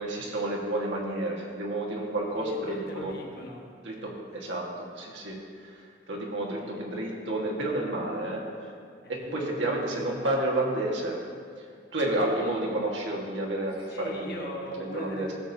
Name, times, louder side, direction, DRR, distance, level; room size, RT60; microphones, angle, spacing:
voice 1, 0.0-3.1 3.8-8.4 9.3-11.2 11.9-15.3, right 1 dB, 80° right, -2 dB, 1.5 m, -30 dB
voice 2, 2.3-3.6 4.0-4.1 4.6-4.7 6.6-6.8 9.0-10.1 12.3-12.5 13.8-15.3, left 1 dB, 55° left, -1 dB, 1.2 m, -41 dB
15.0 x 6.9 x 2.7 m, 2.1 s
head